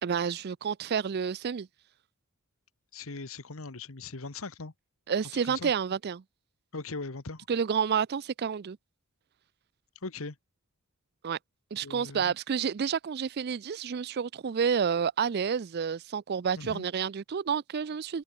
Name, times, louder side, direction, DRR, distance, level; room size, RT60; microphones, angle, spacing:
voice 1, 0.0-1.7 5.1-6.2 7.5-8.8 11.2-11.4 11.7-18.2, right 7 dB, 45° right, 0.4 m, -29 dB
voice 2, 2.9-4.7 5.4-5.7 6.7-7.5 10.0-10.4 11.8-12.3 16.6-16.9, left 3 dB, 65° left, 1.4 m, -39 dB
head